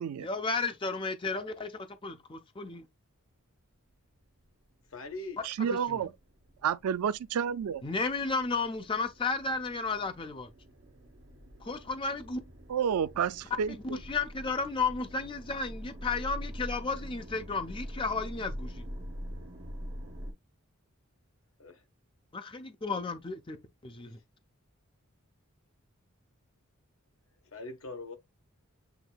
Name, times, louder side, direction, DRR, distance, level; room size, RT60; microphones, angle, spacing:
voice 1, 0.2-2.9 5.7-6.0 7.8-10.5 11.6-12.4 13.7-18.9 22.3-23.6 23.8-24.2, left 4 dB, 25° left, 0.5 m, -33 dB
voice 2, 4.9-5.4 21.6-21.9 27.5-28.2, left 2 dB, 65° left, 1.1 m, -41 dB
sound 1, 4.9-20.3, equal, 65° right, 1.4 m, -44 dB
voice 3, 5.4-6.1 6.6-7.8 12.7-14.0, right 7 dB, 80° right, 0.3 m, -30 dB
7.9 x 2.7 x 2.2 m
head